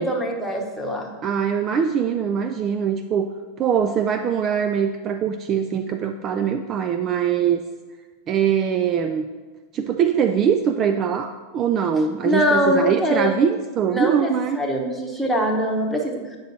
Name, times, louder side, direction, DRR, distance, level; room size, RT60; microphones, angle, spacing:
voice 1, 0.0-1.1 12.2-13.4 13.9-16.4, equal, ahead, 0 dB, 1.1 m, -23 dB
voice 2, 1.2-3.3 3.6-7.6 8.3-9.3 9.7-14.6, right 7 dB, 40° right, 8 dB, 0.3 m, -22 dB
8.8 x 6.1 x 2.8 m, 1.3 s
hypercardioid pair, 95°, 0 cm